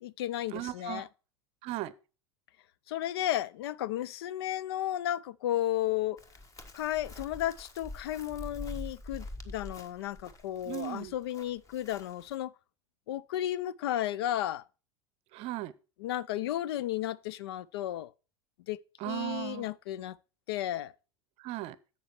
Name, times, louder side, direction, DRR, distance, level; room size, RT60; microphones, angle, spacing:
voice 1, 0.0-1.1 2.9-6.2 6.7-12.5 13.1-14.6 16.0-18.1 18.7-18.8 19.0-20.2 20.5-20.9, left 12 dB, 55° left, 0.4 m, -33 dB
voice 2, 0.5-1.1 1.6-1.9 10.6-11.1 15.3-15.7 19.0-19.7 21.4-21.8, right 16 dB, 40° right, 0.7 m, -37 dB
Chirp tweet, 6.2-12.3, left 2 dB, 20° left, 1.4 m, -45 dB
11.5 x 7.9 x 3.0 m
figure-of-eight pair, 80°, 15 cm